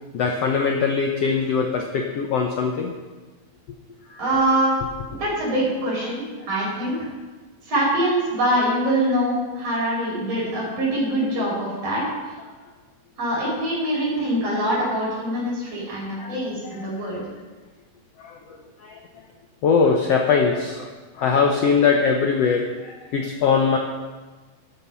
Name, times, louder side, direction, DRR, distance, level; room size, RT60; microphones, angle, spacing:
voice 1, 0.1-2.9 4.1-4.2 16.2-16.3 16.8-16.9 18.2-18.6 18.8-19.0 19.6-23.8, left 5 dB, 85° left, 3 dB, 1.4 m, -21 dB
voice 2, 4.2-4.8 5.1-7.1 7.6-12.0 13.2-17.2, right 1 dB, 45° right, -5 dB, 6.2 m, -24 dB
13.0 x 11.0 x 5.6 m, 1.3 s
omnidirectional pair, 4.2 m